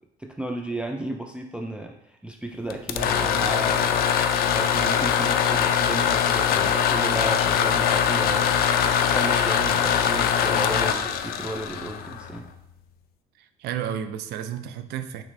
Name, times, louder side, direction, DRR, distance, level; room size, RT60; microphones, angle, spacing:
voice 1, 0.2-4.0 4.5-8.5 9.1-12.5, right 1 dB, 5° right, 2 dB, 0.3 m, -33 dB
sound 1, 2.7-12.5, left 8 dB, 65° left, 0.4 m, -22 dB
voice 2, 13.4-15.2, right 9 dB, 75° right, 10 dB, 0.4 m, -32 dB
5.9 x 3.1 x 2.6 m, 0.80 s
cardioid pair, 110°, 17 cm